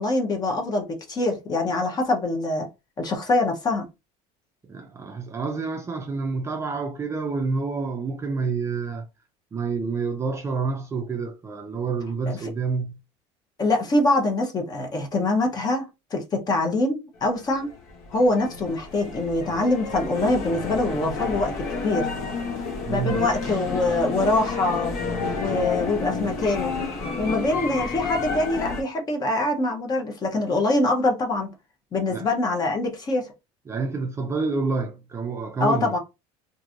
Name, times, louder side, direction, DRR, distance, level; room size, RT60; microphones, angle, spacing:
voice 1, 0.0-2.7 3.0-3.9 12.3-12.5 13.6-17.7 18.1-22.1 22.9-24.9 25.3-26.7 27.2-31.5 31.9-33.3 35.6-36.0, left 2 dB, 25° left, 0.8 m, -24 dB
voice 2, 4.6-9.1 9.5-13.0 22.8-23.3 32.1-32.3 33.7-35.9, right 4 dB, 20° right, 0.4 m, -28 dB
sound 1, 17.4-28.8, left 4 dB, 75° left, 1.0 m, -30 dB
3.1 x 2.6 x 2.5 m
cardioid pair, 140°, 15 cm